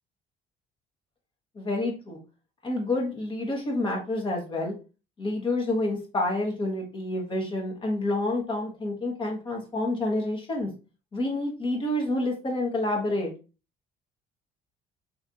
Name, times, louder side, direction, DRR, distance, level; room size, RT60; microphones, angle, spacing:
voice 1, 1.5-2.2 2.6-4.7 5.2-10.7 11.1-13.3, left 2 dB, 30° left, 0 dB, 1.1 m, -28 dB
3.1 x 2.5 x 3.9 m, 0.32 s
cardioid pair, 110°, 17 cm